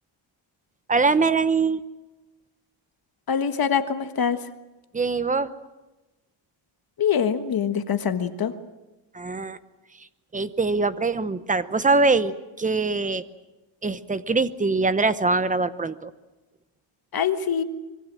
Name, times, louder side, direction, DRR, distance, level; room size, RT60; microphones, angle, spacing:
voice 1, 0.9-1.8 4.9-5.5 9.1-9.6 10.3-12.3 12.6-13.2 13.8-16.1, right 3 dB, 15° right, 13 dB, 0.8 m, -23 dB
voice 2, 3.3-4.4 7.0-8.5 17.1-17.6, left 7 dB, 50° left, 9 dB, 1.5 m, -24 dB
25.0 x 22.5 x 7.5 m, 1.1 s
wide cardioid pair, 165°, 47 cm